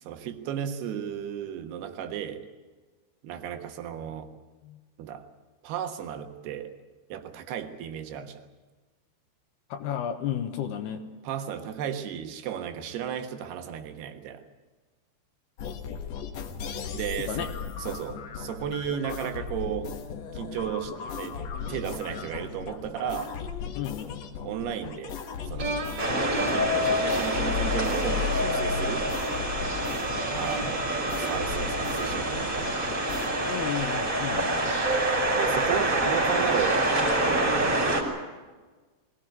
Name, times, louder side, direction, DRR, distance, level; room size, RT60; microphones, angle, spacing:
voice 1, 0.0-2.4 3.2-4.3 5.0-5.3 5.6-6.7 7.1-8.5 11.2-14.4 16.9-17.5 17.8-20.0 20.3-21.4 21.7-23.3 24.4-25.2 25.5-25.9 26.2-29.1 30.3-32.8 35.3-37.6, right 9 dB, 75° right, 7 dB, 3.4 m, -34 dB
voice 2, 9.7-11.0 17.2-17.5 23.8-24.2 33.4-34.8, left 10 dB, 80° left, 5 dB, 3.1 m, -33 dB
sound 1, 15.6-33.3, left 7 dB, 60° left, 1.9 m, -36 dB
sound 2, 25.6-33.8, right 3 dB, 50° right, 1.3 m, -39 dB
sound 3, 26.0-38.0, right 1 dB, 20° right, 4.3 m, -26 dB
22.0 x 17.0 x 9.3 m, 1.3 s
omnidirectional pair, 4.7 m